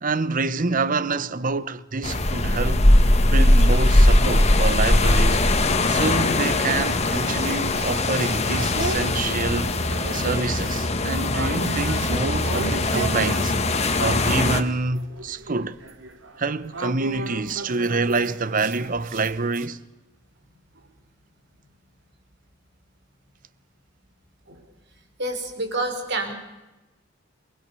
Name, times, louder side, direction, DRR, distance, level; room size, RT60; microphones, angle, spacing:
voice 1, 0.0-2.9 3.3-5.5 5.9-13.5 14.0-15.8 16.4-19.8, right 3 dB, 45° right, 0.9 m, -26 dB
sound 1, 2.0-14.6, left 1 dB, 35° left, 1.8 m, -20 dB
sound 2, 3.9-5.1 5.6-14.5 14.9-19.7, right 3 dB, 80° right, 2.5 m, -36 dB
voice 2, 25.2-26.3, right 2 dB, 60° right, 5.3 m, -28 dB
29.5 x 20.0 x 6.9 m
head